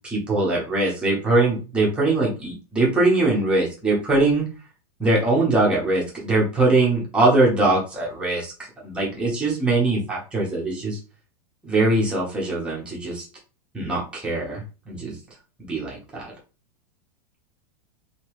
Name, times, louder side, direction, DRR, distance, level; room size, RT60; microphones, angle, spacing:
voice 1, 0.0-4.5 5.0-11.0 11.6-13.3 13.7-15.2 15.7-16.3, right 2 dB, 5° right, -4 dB, 0.9 m, -22 dB
3.0 x 2.9 x 3.0 m, 0.32 s
supercardioid pair, 170°, 20 cm